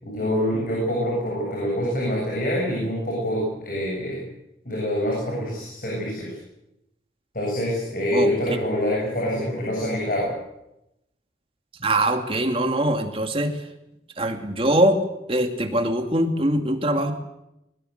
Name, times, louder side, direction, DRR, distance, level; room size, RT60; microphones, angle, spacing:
voice 1, 0.0-4.2 4.6-6.4 7.3-10.3, equal, 50° left, -3 dB, 7.8 m, -25 dB
voice 2, 8.1-8.6 11.8-13.5 14.2-15.0 15.3-17.1, right 1 dB, 30° right, 5 dB, 2.5 m, -22 dB
21.5 x 20.5 x 8.0 m, 0.87 s
head